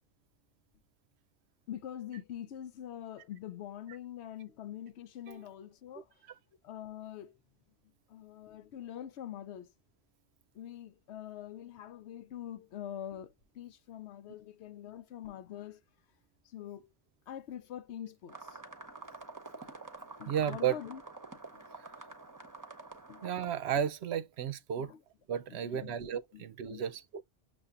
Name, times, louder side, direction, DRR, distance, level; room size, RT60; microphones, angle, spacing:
voice 1, 1.7-6.1 6.6-7.4 8.1-9.7 10.5-15.8 16.4-16.9 17.3-18.6 20.2-21.0 21.5-21.6 23.1-23.3 24.8-25.0 25.5-25.9 26.3-26.4 26.7-26.9, left 10 dB, 75° left, 0.8 m, -44 dB
sound 1, 18.3-23.5, right 3 dB, 20° right, 0.8 m, -48 dB
voice 2, 20.3-20.8 21.8-21.9 23.2-24.9 25.3-27.2, right 9 dB, 70° right, 0.8 m, -33 dB
6.8 x 2.5 x 2.4 m
omnidirectional pair, 1.2 m